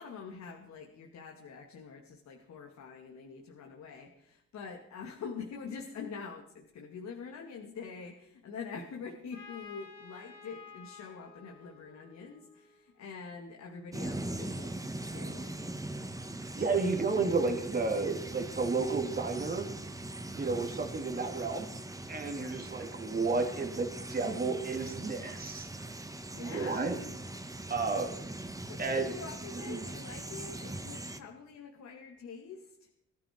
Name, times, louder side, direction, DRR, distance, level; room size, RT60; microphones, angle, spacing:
voice 1, 0.0-14.7 15.1-15.6 26.3-26.9 28.7-32.6, left 5 dB, 65° left, 1 dB, 2.6 m, -45 dB
Trumpet, 9.3-13.0, left 5 dB, 85° left, 5.7 m, -52 dB
sound 1, 13.9-31.2, right 2 dB, 10° right, 1.4 m, -41 dB
voice 2, 16.5-19.7 20.3-21.7 22.1-25.7 26.4-27.0 27.7-28.1 28.8-29.1 29.5-29.9, right 4 dB, 30° right, 3 dB, 3.0 m, -32 dB
21.0 x 13.5 x 4.7 m, 0.75 s
cardioid pair, 90°, 30 cm